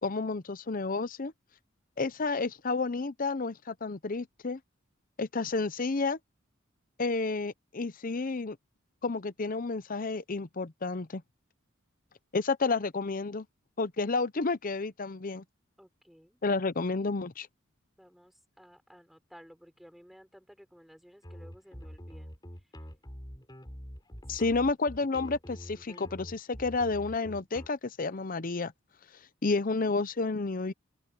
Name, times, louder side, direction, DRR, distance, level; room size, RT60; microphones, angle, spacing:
voice 1, 0.0-1.3 2.0-4.6 5.2-6.2 7.0-8.6 9.0-11.2 12.3-13.5 13.8-15.4 16.4-17.5 24.3-28.7 29.4-30.7, left 3 dB, 45° left, 0.7 m, -31 dB
voice 2, 15.8-16.4 18.0-22.3 24.4-24.6, equal, ahead, 4.2 m, -55 dB
sound 1, 21.2-27.7, equal, 20° left, 4.7 m, -45 dB
open air
head